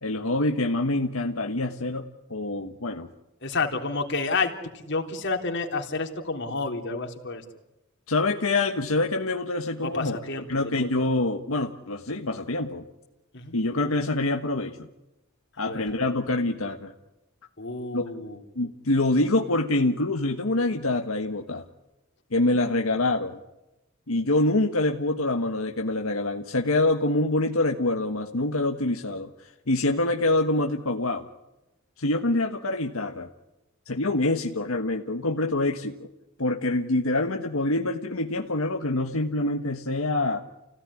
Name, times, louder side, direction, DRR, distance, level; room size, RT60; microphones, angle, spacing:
voice 1, 0.0-3.1 8.1-10.2 10.5-12.8 13.5-14.9 15.6-16.9 17.9-18.2 18.5-21.6 22.3-23.4 24.1-31.3 32.0-33.3 33.9-36.1 36.4-40.4, left 2 dB, 85° left, 3 dB, 1.5 m, -25 dB
voice 2, 3.4-4.5 4.9-7.4 9.8-10.9 13.3-13.5 15.6-15.9 17.6-18.4, left 3 dB, 60° left, 3 dB, 3.6 m, -30 dB
30.0 x 17.0 x 9.9 m, 0.98 s
head